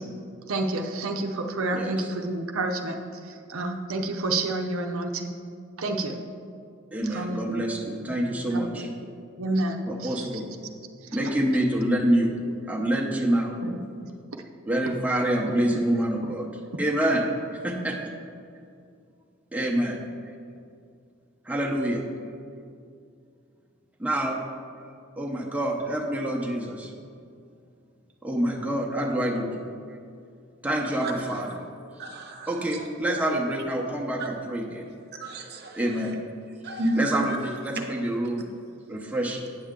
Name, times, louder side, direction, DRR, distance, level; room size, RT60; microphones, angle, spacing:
voice 1, 0.5-5.3 5.8-6.2 7.0-7.6 8.0-8.2 8.5-8.8 9.4-10.4 13.6-13.7, right 2 dB, 85° right, 3 dB, 0.7 m, -29 dB
voice 2, 6.9-8.9 9.9-10.4 11.1-12.3 12.7-13.6 14.7-16.5 16.8-17.2 17.5-18.1 19.5-20.0 21.5-22.0 24.0-24.4 25.2-26.9 28.2-29.6 30.6-31.5 32.5-34.9 35.8-36.1 37.0-38.4 38.9-39.5, right 1 dB, 5° right, -2 dB, 0.8 m, -26 dB
voice 3, 31.0-31.6 32.0-32.9 34.2-34.3 35.2-36.2 36.6-37.4 37.7-37.8, right 1 dB, 50° right, 3 dB, 0.9 m, -32 dB
9.1 x 7.0 x 3.7 m, 2.4 s
head